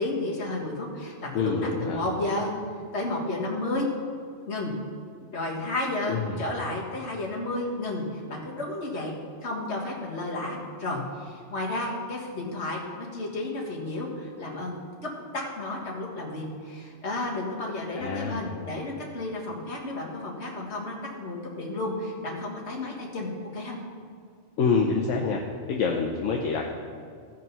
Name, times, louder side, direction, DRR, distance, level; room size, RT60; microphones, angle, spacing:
voice 1, 0.0-2.5 2.9-3.9 4.5-4.7 5.2-9.1 9.4-14.8 15.3-23.8, left 2 dB, 60° left, -3 dB, 1.9 m, -32 dB
voice 2, 1.3-2.0 6.1-6.4 17.9-18.4 24.6-25.4 25.7-26.7, left 5 dB, 80° left, 1 dB, 1.1 m, -26 dB
15.0 x 5.2 x 5.4 m, 2.2 s
omnidirectional pair, 1.3 m